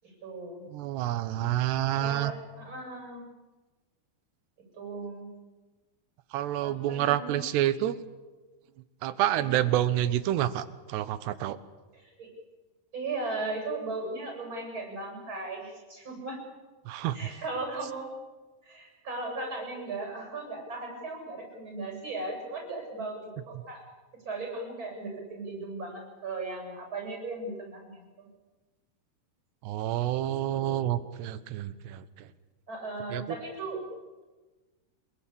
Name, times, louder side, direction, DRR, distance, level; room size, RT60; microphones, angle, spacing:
voice 1, 0.0-0.7 1.9-3.2 4.7-5.3 6.6-7.6 9.4-9.6 11.9-12.3 12.9-16.4 17.1-18.1 18.6-23.8 24.2-28.3 30.2-31.0 32.7-33.9, right 2 dB, 25° right, 2 dB, 8.3 m, -37 dB
voice 2, 0.7-2.3 6.3-7.9 9.0-11.6 16.9-17.2 29.6-32.0 33.1-33.2, right 13 dB, 80° right, 14 dB, 3.2 m, -28 dB
27.0 x 22.0 x 8.7 m, 1.2 s
omnidirectional pair, 4.9 m